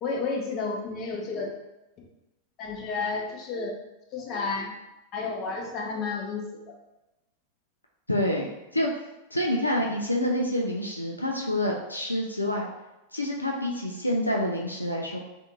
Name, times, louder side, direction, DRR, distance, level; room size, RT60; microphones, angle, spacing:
voice 1, 0.0-1.5 2.6-3.7 4.1-4.8 5.1-6.5, left 4 dB, 35° left, 0 dB, 0.7 m, -31 dB
voice 2, 8.1-8.5 8.7-8.9 9.3-12.7 13.1-15.2, left 1 dB, 85° left, 0 dB, 0.3 m, -27 dB
3.3 x 2.5 x 2.8 m, 0.98 s
figure-of-eight pair, 90°, 0 cm